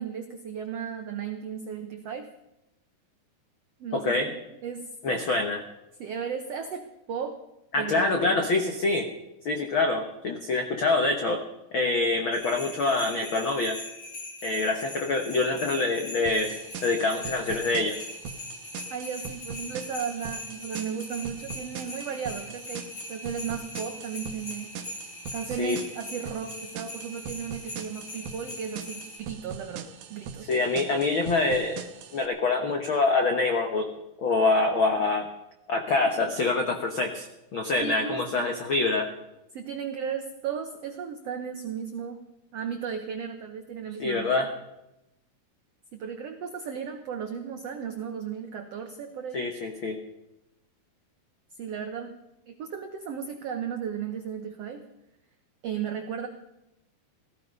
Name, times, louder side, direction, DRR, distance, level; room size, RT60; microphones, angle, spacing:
voice 1, 0.0-2.3 3.8-4.4 4.6-4.9 6.0-7.4 7.8-8.5 18.9-24.7 25.3-30.5 37.8-38.5 39.5-42.2 42.5-44.3 45.9-49.5 51.6-52.1 52.5-54.8 55.6-56.3, right 7 dB, 90° right, 6 dB, 1.3 m, -35 dB
voice 2, 3.9-4.3 5.0-5.6 7.7-9.1 9.4-11.4 11.7-13.8 14.4-16.5 16.8-18.0 25.6-25.8 30.5-31.8 32.1-33.8 34.2-35.2 35.7-39.1 44.0-44.5 49.3-50.0, left 3 dB, 85° left, 4 dB, 1.1 m, -25 dB
sound 1, 12.3-29.2, left 2 dB, 35° left, 3.3 m, -41 dB
sound 2, 16.3-32.3, right 7 dB, 65° right, 2.3 m, -42 dB
17.0 x 14.5 x 5.4 m, 0.91 s
omnidirectional pair, 4.3 m